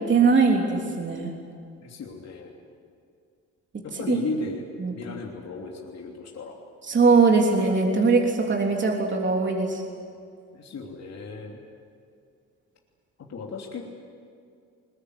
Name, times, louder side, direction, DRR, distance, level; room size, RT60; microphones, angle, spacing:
voice 1, 0.1-1.3 3.9-4.2 4.8-5.2 6.9-9.8, right 4 dB, 40° right, 0 dB, 3.4 m, -21 dB
voice 2, 1.8-2.5 3.8-6.5 10.5-11.6 13.3-13.9, left 3 dB, 60° left, -1 dB, 3.2 m, -35 dB
21.5 x 21.5 x 9.9 m, 2.4 s
cardioid pair, 90°, 30 cm